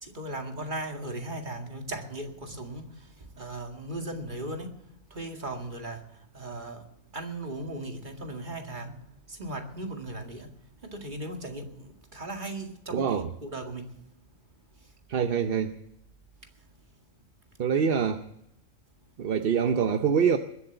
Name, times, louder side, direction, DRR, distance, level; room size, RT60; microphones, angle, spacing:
voice 1, 0.0-4.7 5.1-6.8 7.1-9.0 9.3-10.5 10.8-13.9, right 1 dB, 35° right, 3 dB, 2.2 m, -37 dB
voice 2, 12.9-13.3 15.1-15.7 17.6-18.2 19.2-20.4, right 7 dB, 50° right, 8 dB, 0.8 m, -25 dB
21.5 x 7.7 x 7.9 m, 0.83 s
omnidirectional pair, 1.4 m